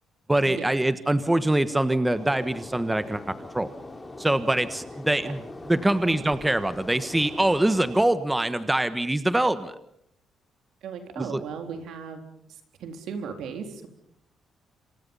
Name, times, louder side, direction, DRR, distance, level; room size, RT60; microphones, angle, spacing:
voice 1, 0.3-3.2 3.5-3.7 4.2-5.4 5.7-9.7 11.2-11.4, right 1 dB, 10° right, 12 dB, 1.4 m, -24 dB
sound 1, 2.1-8.1, left 2 dB, 15° left, 4.0 m, -42 dB
voice 2, 10.8-12.2 12.5-13.9, right 6 dB, 80° right, 5 dB, 4.0 m, -36 dB
28.0 x 25.5 x 5.6 m, 0.71 s
cardioid pair, 90°, 0 cm